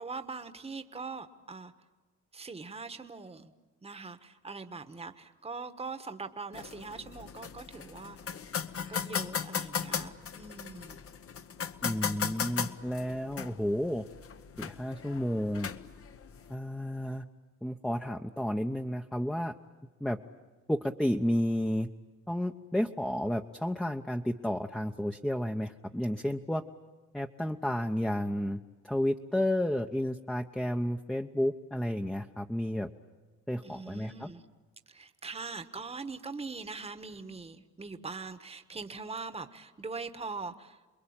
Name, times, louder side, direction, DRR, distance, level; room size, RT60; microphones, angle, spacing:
voice 1, 0.0-1.7 2.3-3.5 3.8-8.3 8.9-11.0 33.6-34.4 34.9-40.9, right 4 dB, 20° right, 9 dB, 1.4 m, -42 dB
sound 1, 6.5-16.5, left 7 dB, 50° left, 1.1 m, -37 dB
voice 2, 11.8-14.0 14.6-15.7 16.5-17.2 17.6-19.5 20.0-20.2 20.7-21.9 22.3-26.6 27.1-32.9 33.5-34.3, left 1 dB, ahead, 3 dB, 0.9 m, -31 dB
28.5 x 21.5 x 8.8 m, 1.3 s
cardioid pair, 90°, 30 cm